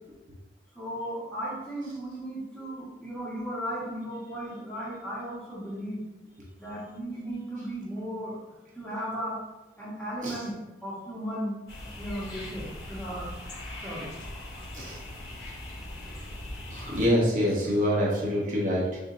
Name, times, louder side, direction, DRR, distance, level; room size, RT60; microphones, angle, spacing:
voice 1, 0.7-6.0 6.6-8.4 8.7-9.3 9.8-10.5 10.8-11.6 12.0-13.3 13.8-14.0, equal, 5° left, -8 dB, 1.3 m, -35 dB
sound 1, 11.7-17.1, left 1 dB, 90° left, 1.4 m, -40 dB
voice 2, 16.7-19.0, equal, 45° right, -4 dB, 0.9 m, -26 dB
6.9 x 2.7 x 2.7 m, 1.0 s
head